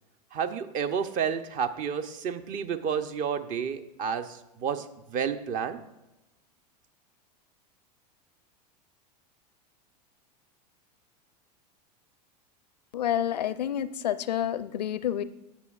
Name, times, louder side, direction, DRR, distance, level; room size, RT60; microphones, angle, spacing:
voice 1, 0.3-5.8, right 7 dB, 40° right, 10 dB, 0.7 m, -31 dB
voice 2, 12.9-15.2, left 10 dB, 75° left, 15 dB, 0.5 m, -29 dB
15.0 x 6.3 x 2.4 m, 0.94 s
hypercardioid pair, 90°, 21 cm